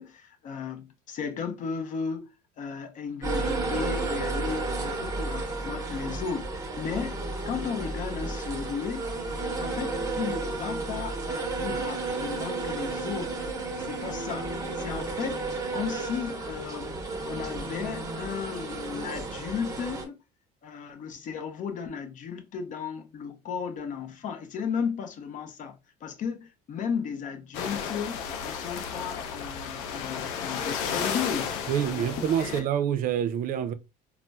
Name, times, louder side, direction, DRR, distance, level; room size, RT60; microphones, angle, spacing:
voice 1, 0.0-2.3 2.6-9.1 9.6-15.5 15.7-20.2 20.6-25.8 26.0-32.6, left 6 dB, 40° left, 0.6 m, -35 dB
sound 1, 3.2-20.0, right 3 dB, 15° right, 0.9 m, -32 dB
sound 2, 27.5-32.6, left 7 dB, 90° left, 0.6 m, -33 dB
voice 2, 31.7-33.7, right 9 dB, 45° right, 0.5 m, -27 dB
4.0 x 2.0 x 2.2 m
cardioid pair, 125°, 20 cm